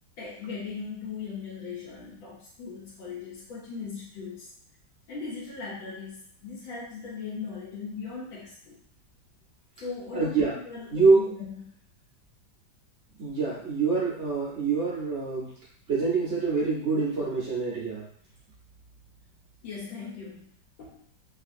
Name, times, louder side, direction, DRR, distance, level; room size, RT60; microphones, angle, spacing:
voice 1, 0.2-4.5 5.1-8.8 9.8-11.8 19.6-20.5 20.8-21.0, left 5 dB, 90° left, -7 dB, 1.6 m, -39 dB
voice 2, 10.1-10.6 10.9-11.2 13.2-15.5 15.9-18.1, right 4 dB, 55° right, -5 dB, 0.7 m, -25 dB
3.3 x 2.5 x 2.5 m, 0.65 s
omnidirectional pair, 2.1 m